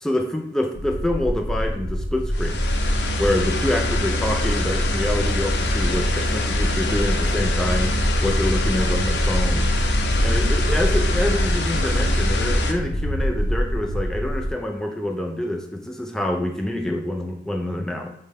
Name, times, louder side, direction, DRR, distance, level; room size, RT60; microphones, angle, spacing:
voice 1, 0.0-2.6 3.2-9.7 10.2-18.1, left 1 dB, 5° left, 1 dB, 0.4 m, -26 dB
sound 1, 0.8-14.5, equal, 50° right, 0.6 m, -25 dB
sound 2, 2.3-12.7, left 2 dB, 75° left, 0.6 m, -25 dB
5.6 x 2.2 x 3.4 m, 0.79 s
head